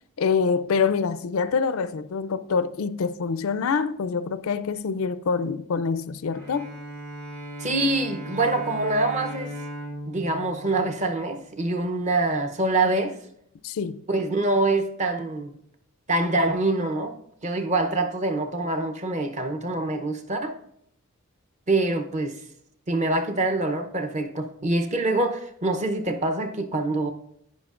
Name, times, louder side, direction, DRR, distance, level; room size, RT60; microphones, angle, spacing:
voice 1, 0.2-6.7 13.6-14.0, left 5 dB, 70° left, 0.4 m, -25 dB
Bowed string instrument, 6.3-11.7, right 1 dB, 80° right, 3.4 m, -38 dB
voice 2, 7.6-9.5 10.0-13.2 14.1-15.5 16.1-20.5 21.7-22.4 22.9-27.1, right 2 dB, 30° right, 0.7 m, -25 dB
11.0 x 9.6 x 2.5 m
head